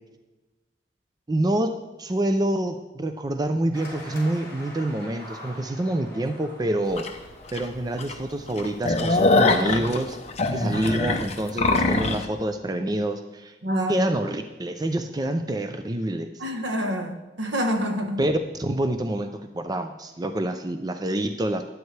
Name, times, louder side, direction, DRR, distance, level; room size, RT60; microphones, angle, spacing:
voice 1, 1.3-1.7 2.0-7.1 7.5-10.2 10.5-13.5 13.9-16.3 18.2-21.6, right 1 dB, 20° right, 7 dB, 0.5 m, -27 dB
sound 1, 3.7-8.8, equal, 15° left, 3.5 m, -44 dB
sound 2, 7.0-7.1 7.6-7.7 8.0-8.1 8.5-12.2, left 2 dB, 35° left, 0.8 m, -22 dB
voice 2, 10.6-10.9 13.6-14.0 16.4-18.2, equal, 80° right, 5 dB, 1.3 m, -27 dB
12.5 x 9.4 x 3.3 m, 1.1 s
head